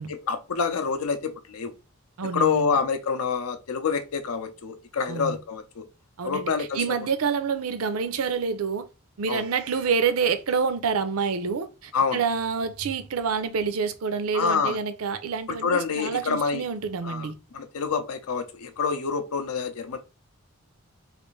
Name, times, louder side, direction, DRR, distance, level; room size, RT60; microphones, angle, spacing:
voice 1, 0.3-1.7 2.3-5.8 6.2-6.8 9.3-9.4 11.9-12.2 14.3-14.8 15.6-16.6 17.0-20.0, left 5 dB, 80° left, 0.6 m, -27 dB
voice 2, 2.2-2.7 5.1-5.4 6.2-8.9 9.2-17.4, right 5 dB, 80° right, 0.5 m, -27 dB
3.2 x 2.5 x 3.1 m
head